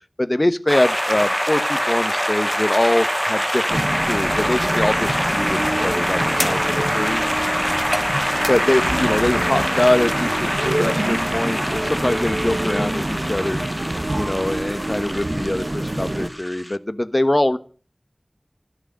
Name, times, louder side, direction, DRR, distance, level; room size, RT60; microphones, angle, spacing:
voice 1, 0.2-7.3 8.5-17.6, left 1 dB, 40° left, 12 dB, 1.1 m, -23 dB
sound 1, 0.7-16.8, equal, ahead, 0.8 m, -24 dB
sound 2, 3.7-16.3, right 1 dB, 50° right, 1.4 m, -27 dB
14.0 x 6.3 x 9.2 m, 0.41 s
wide cardioid pair, 45°, 0 cm